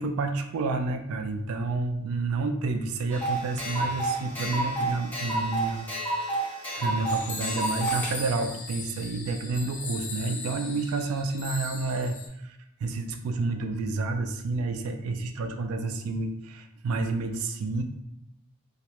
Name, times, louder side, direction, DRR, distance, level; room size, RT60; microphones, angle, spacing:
voice 1, 0.0-5.9 6.4-12.2 12.4-17.8, right 3 dB, 80° right, 6 dB, 0.3 m, -30 dB
sound 1, 3.1-8.1, right 2 dB, 10° left, 0.4 m, -30 dB
sound 2, 7.1-12.3, left 3 dB, 75° left, 0.5 m, -38 dB
2.3 x 2.0 x 2.9 m, 0.83 s
head